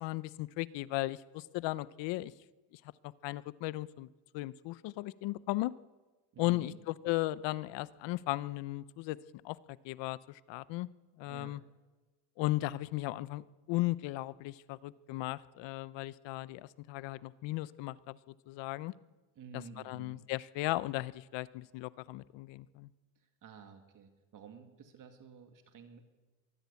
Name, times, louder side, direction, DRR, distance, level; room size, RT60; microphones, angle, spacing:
voice 1, 0.0-2.3 2.7-4.1 4.3-5.7 6.4-9.2 9.4-10.9 11.2-11.6 12.4-18.9 19.5-22.9, left 18 dB, 70° left, 18 dB, 0.8 m, -36 dB
voice 2, 6.3-6.8 11.3-11.6 19.4-20.3 23.2-26.0, right 6 dB, 45° right, 6 dB, 2.2 m, -52 dB
23.0 x 14.5 x 8.4 m, 1.2 s
cardioid pair, 125°, 45 cm